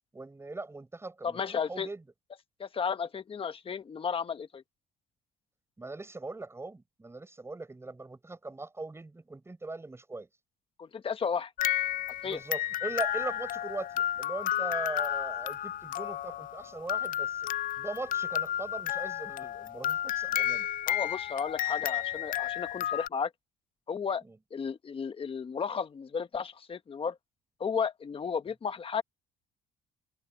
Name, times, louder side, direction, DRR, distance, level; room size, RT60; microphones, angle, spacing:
voice 1, 0.1-2.0 5.8-10.3 12.2-17.5 17.8-20.7 22.8-22.9 24.2-24.4, right 2 dB, 15° right, 7.4 m, -40 dB
voice 2, 1.2-1.9 2.6-4.6 10.8-11.5 12.2-12.4 20.9-23.3 23.9-24.2 24.5-27.2 27.6-29.0, left 6 dB, 35° left, 1.4 m, -33 dB
sound 1, 11.6-23.1, left 12 dB, 55° left, 0.4 m, -32 dB
cardioid pair, 110°, 17 cm